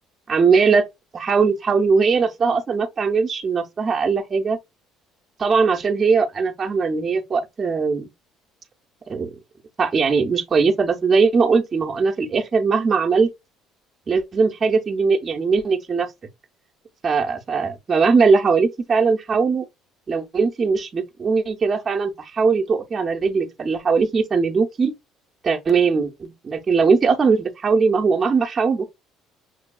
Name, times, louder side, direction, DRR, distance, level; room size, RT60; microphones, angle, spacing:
voice 1, 0.3-4.6 5.4-8.1 9.1-9.3 9.8-13.3 14.1-16.1 17.0-19.7 20.1-24.9 25.4-28.9, right 5 dB, 30° right, 0.6 m, -20 dB
6.0 x 2.2 x 2.2 m
cardioid pair, 115°, 0 cm